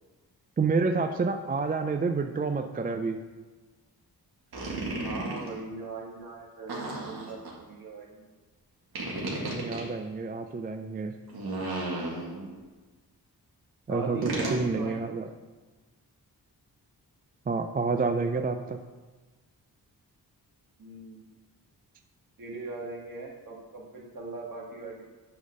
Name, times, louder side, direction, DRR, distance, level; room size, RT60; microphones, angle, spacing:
voice 1, 0.6-3.2 9.5-11.2 13.9-15.3 17.5-18.8, right 4 dB, 25° right, 7 dB, 0.4 m, -29 dB
sound 1, 4.5-5.5 6.7-7.5 8.9-9.8 11.3-12.5 14.2-14.6, right 2 dB, 80° right, 1.9 m, -33 dB
voice 2, 5.0-8.3 13.9-15.1 20.8-21.3 22.4-25.0, right 3 dB, 60° right, -2 dB, 1.9 m, -40 dB
8.7 x 3.9 x 6.3 m, 1.3 s
wide cardioid pair, 105°, 38 cm